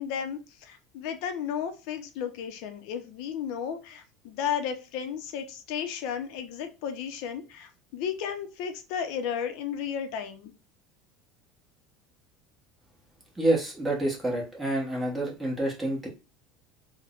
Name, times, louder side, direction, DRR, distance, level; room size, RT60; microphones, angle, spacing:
voice 1, 0.0-10.5, left 8 dB, 65° left, 7 dB, 0.6 m, -34 dB
voice 2, 13.4-16.1, right 1 dB, 10° right, -2 dB, 1.1 m, -28 dB
3.5 x 2.1 x 2.4 m, 0.31 s
cardioid pair, 155°, 0 cm